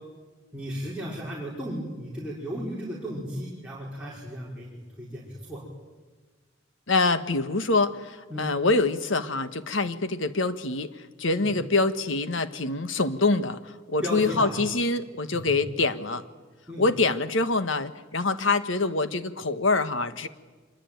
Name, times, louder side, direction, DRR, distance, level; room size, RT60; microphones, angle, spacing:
voice 1, 0.5-5.6 8.3-8.5 11.3-11.5 14.0-14.6 16.7-16.8, equal, 5° right, -6 dB, 5.1 m, -35 dB
voice 2, 6.9-10.9 11.2-16.2 16.8-20.3, left 3 dB, 75° left, 11 dB, 1.4 m, -25 dB
25.5 x 22.0 x 9.4 m, 1.3 s
head